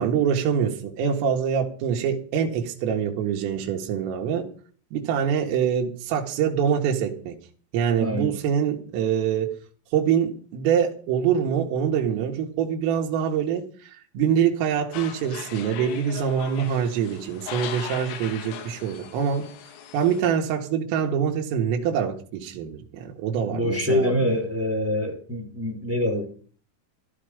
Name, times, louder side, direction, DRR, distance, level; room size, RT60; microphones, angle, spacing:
voice 1, 0.0-4.5 4.9-7.4 7.7-9.5 9.9-19.5 19.9-24.3, right 8 dB, 80° right, 4.5 m, -25 dB
voice 2, 8.0-8.4 23.5-26.3, left 1 dB, 5° right, 2.9 m, -25 dB
sound 1, 14.9-20.2, left 9 dB, 80° left, 4.2 m, -39 dB
16.0 x 12.5 x 5.1 m
omnidirectional pair, 5.9 m